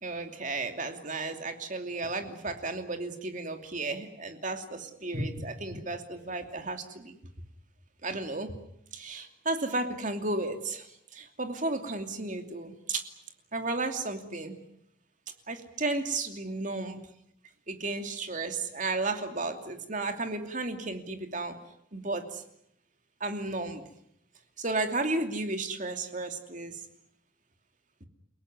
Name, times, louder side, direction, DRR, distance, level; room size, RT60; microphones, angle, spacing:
voice 1, 0.0-7.2 8.0-8.5 8.9-13.0 13.5-14.6 15.5-17.0 17.7-21.6 21.9-22.4 23.2-23.8 24.6-26.8, right 2 dB, 40° right, 6 dB, 2.7 m, -33 dB
30.0 x 18.0 x 9.6 m, 0.75 s
head